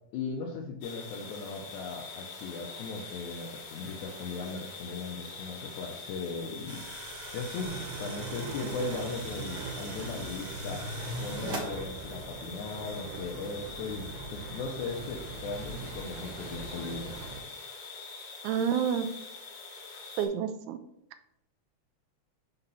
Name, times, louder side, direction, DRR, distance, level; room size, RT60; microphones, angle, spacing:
voice 1, 0.1-6.8 7.3-10.8 11.2-17.1, left 4 dB, 85° left, 0 dB, 2.1 m, -38 dB
sound 1, 0.8-20.3, left 4 dB, 70° left, 2.6 m, -44 dB
sound 2, 6.7-11.7, equal, 45° right, 1.5 m, -41 dB
sound 3, 7.5-17.4, right 4 dB, 65° right, 1.8 m, -42 dB
voice 2, 18.4-19.1 20.2-20.8, right 8 dB, 85° right, 9 dB, 2.0 m, -28 dB
4.9 x 4.0 x 5.5 m, 0.76 s
omnidirectional pair, 3.3 m